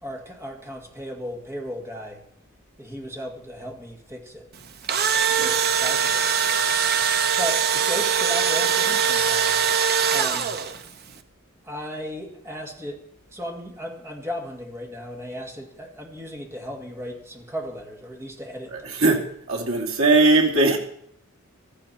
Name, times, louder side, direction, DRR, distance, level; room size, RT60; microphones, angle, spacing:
voice 1, 0.0-2.2 2.8-4.5 5.3-6.7 7.4-9.6 10.1-10.6 11.6-13.0 13.3-18.9, equal, 10° right, 1 dB, 2.1 m, -36 dB
Engine / Drill, 4.6-10.9, right 7 dB, 45° right, 0.9 m, -22 dB
voice 2, 18.7-19.2 19.5-20.8, right 2 dB, 70° right, -1 dB, 2.9 m, -19 dB
14.5 x 13.5 x 4.4 m, 0.70 s
head